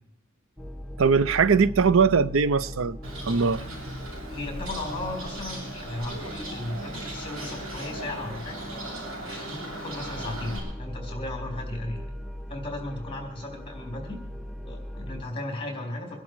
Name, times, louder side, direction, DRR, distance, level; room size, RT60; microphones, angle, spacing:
sound 1, 0.6-15.2, equal, ahead, 0.7 m, -40 dB
voice 1, 1.0-3.0 3.3-3.6, right 5 dB, 70° right, 0.6 m, -21 dB
Bird, 3.0-10.6, right 1 dB, 85° right, 7.2 m, -38 dB
voice 2, 4.3-8.6 9.2-12.0 12.5-14.2 14.6-16.2, left 2 dB, 25° left, 3.9 m, -36 dB
23.5 x 11.5 x 4.7 m
head